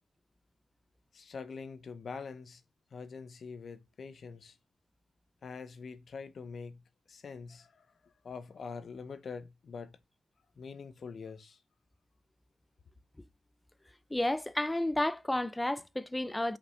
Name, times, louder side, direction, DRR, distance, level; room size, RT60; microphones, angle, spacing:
voice 1, 1.1-2.6 2.9-4.6 5.4-6.8 7.1-10.0 10.6-11.6, left 5 dB, 45° left, 0.7 m, -44 dB
voice 2, 14.1-16.6, left 1 dB, 10° left, 0.5 m, -31 dB
5.3 x 5.2 x 5.8 m
cardioid pair, 90°, 0 cm